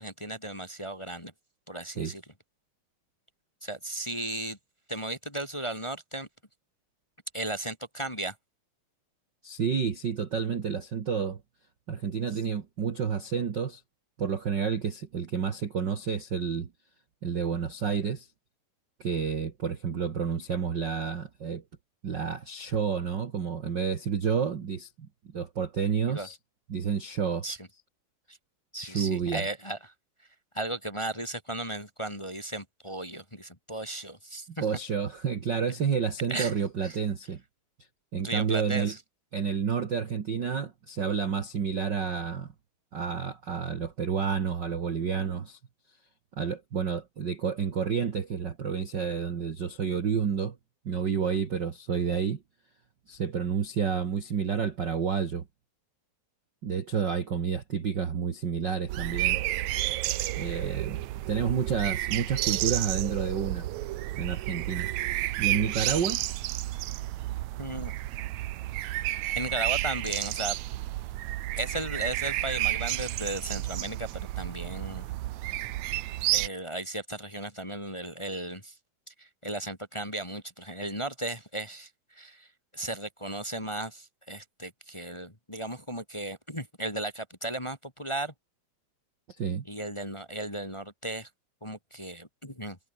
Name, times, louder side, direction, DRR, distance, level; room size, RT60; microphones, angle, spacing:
voice 1, 0.0-1.3 1.7-2.2 3.6-4.6 4.9-6.3 7.3-8.3 26.1-26.3 27.4-27.6 28.3-28.4 28.7-29.9 30.5-34.6 36.3-36.6 36.8-37.0 38.2-39.0 67.6-67.9 69.3-70.5 71.6-75.1 76.3-78.7 79.1-82.5 82.7-88.3 89.7-91.3 91.6-92.8, right 1 dB, 10° left, 2.1 m, -35 dB
voice 2, 9.4-11.4 11.9-13.8 14.2-16.7 17.2-18.3 19.0-21.6 22.0-26.4 26.7-27.4 28.8-29.5 34.6-37.4 38.1-38.9 39.3-42.5 42.9-45.6 46.3-50.6 50.8-52.4 53.1-55.5 56.6-59.4 60.4-63.7 64.1-64.9 65.4-66.2 89.4-89.6, right 6 dB, 50° right, 1.4 m, -30 dB
sound 1, 58.9-76.5, right 16 dB, 80° right, 1.6 m, -31 dB
omnidirectional pair, 4.3 m